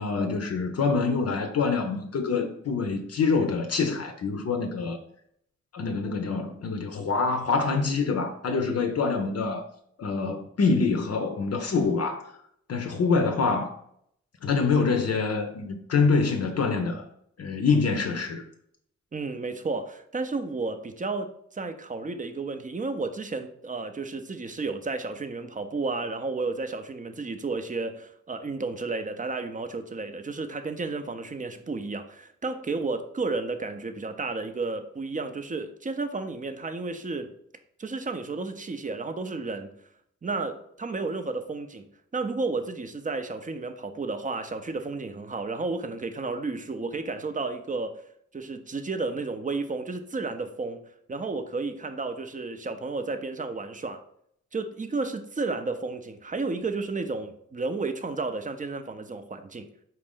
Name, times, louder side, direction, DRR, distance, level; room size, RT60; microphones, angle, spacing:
voice 1, 0.0-5.0 5.7-9.7 10.0-12.3 12.7-13.7 14.4-17.1 17.4-18.4, left 4 dB, 55° left, 0.5 m, -25 dB
voice 2, 19.1-37.3 37.8-39.7 40.2-41.9 42.1-48.0 48.3-50.8 51.1-54.0 54.5-59.7, right 3 dB, 25° right, 0.5 m, -32 dB
4.3 x 2.5 x 3.6 m
cardioid pair, 55°, 31 cm